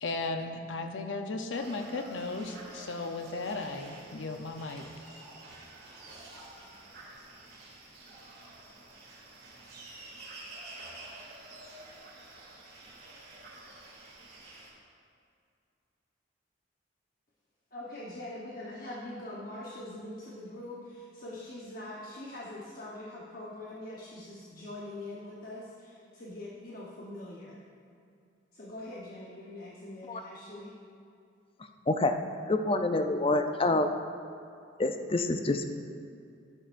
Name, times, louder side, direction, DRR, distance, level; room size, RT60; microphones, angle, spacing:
voice 1, 0.0-4.9, left 3 dB, 75° left, 5 dB, 0.7 m, -35 dB
sound 1, 1.5-14.7, right 2 dB, 50° right, 2.5 m, -49 dB
voice 2, 17.7-27.6 28.5-30.7, left 1 dB, 50° left, -5 dB, 1.0 m, -43 dB
voice 3, 32.5-33.9 34.8-35.6, left 2 dB, 30° left, 6 dB, 0.5 m, -27 dB
12.5 x 11.0 x 2.6 m, 2.4 s
head